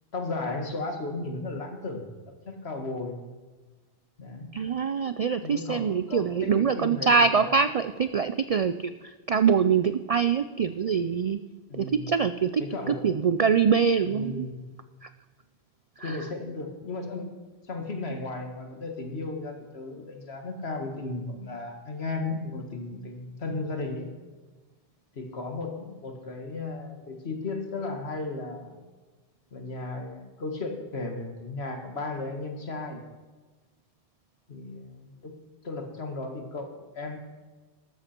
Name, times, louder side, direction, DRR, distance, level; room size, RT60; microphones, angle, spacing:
voice 1, 0.1-2.0 2.5-3.2 4.2-4.5 5.4-7.6 11.7-12.1 12.6-13.0 14.0-14.6 16.0-17.3 17.7-24.1 25.1-28.8 29.5-33.0 34.5-35.3 35.6-37.2, left 3 dB, 70° left, 4 dB, 2.0 m, -35 dB
voice 2, 4.5-8.9 9.3-11.4 11.7-12.6 12.9-14.5 16.0-16.2, right 6 dB, 60° right, 12 dB, 0.3 m, -24 dB
13.5 x 13.0 x 4.4 m, 1.3 s
omnidirectional pair, 1.1 m